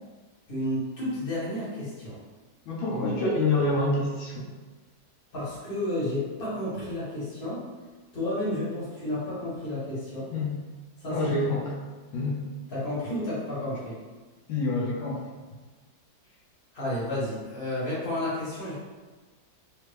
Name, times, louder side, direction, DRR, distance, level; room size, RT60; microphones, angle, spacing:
voice 1, 0.5-2.2 2.9-3.2 5.3-7.7 8.1-10.3 11.0-11.3 12.7-14.0 16.7-18.7, left 1 dB, 30° left, -10 dB, 1.5 m, -31 dB
voice 2, 2.7-4.5 10.3-10.6 11.1-11.7 12.1-12.4 14.5-15.2, left 2 dB, 85° left, -4 dB, 1.5 m, -27 dB
3.5 x 3.2 x 3.2 m, 1.3 s
omnidirectional pair, 2.0 m